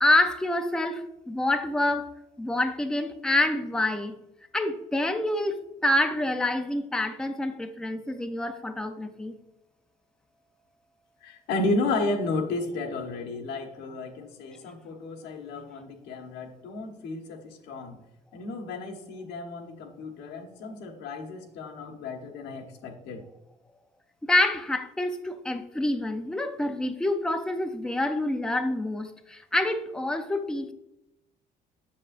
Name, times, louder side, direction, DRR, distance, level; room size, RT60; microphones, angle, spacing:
voice 1, 0.0-2.1 2.4-4.1 4.5-9.3 24.2-30.7, left 1 dB, 5° left, 6 dB, 0.6 m, -27 dB
voice 2, 11.2-18.0 18.3-23.2, left 2 dB, 85° left, 3 dB, 1.2 m, -33 dB
7.4 x 6.9 x 2.5 m, 0.90 s
cardioid pair, 110°, 17 cm